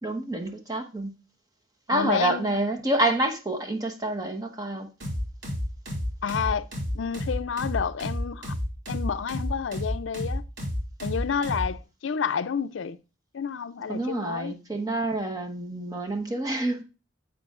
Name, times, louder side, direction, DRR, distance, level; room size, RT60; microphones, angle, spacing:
voice 1, 0.0-1.1 1.9-4.9 13.9-16.8, right 2 dB, 20° right, 1.1 m, -28 dB
voice 2, 1.9-2.6 6.2-6.7 6.9-8.6 8.9-10.4 11.0-13.0 13.3-14.5, left 6 dB, 70° left, 0.4 m, -29 dB
sound 1, 5.0-11.7, left 1 dB, 70° right, 2.5 m, -30 dB
9.9 x 7.6 x 2.4 m
head